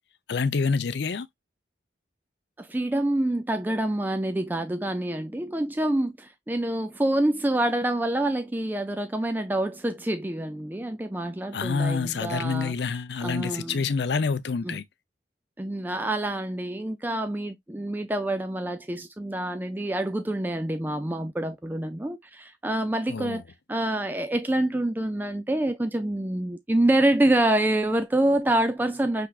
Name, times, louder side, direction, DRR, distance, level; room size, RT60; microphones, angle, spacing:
voice 1, 0.3-1.3 11.5-14.8 23.1-23.4, left 5 dB, 65° left, 0.5 m, -27 dB
voice 2, 2.6-12.7 13.2-13.9 14.6-14.8 15.6-23.4 23.7-29.3, right 1 dB, 10° right, 0.3 m, -26 dB
5.9 x 3.4 x 2.4 m
head